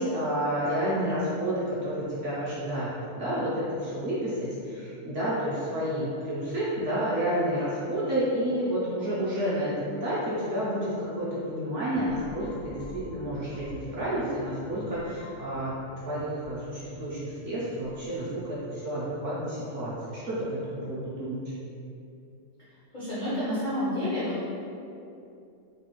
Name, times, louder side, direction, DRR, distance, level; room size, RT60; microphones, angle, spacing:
voice 1, 0.0-21.4, equal, 60° right, -9 dB, 0.8 m, -30 dB
sound 1, 11.9-18.8, left 1 dB, 75° left, 1.0 m, -47 dB
voice 2, 22.9-24.4, left 1 dB, 55° left, -11 dB, 0.5 m, -29 dB
3.3 x 2.3 x 2.9 m, 2.6 s
omnidirectional pair, 1.8 m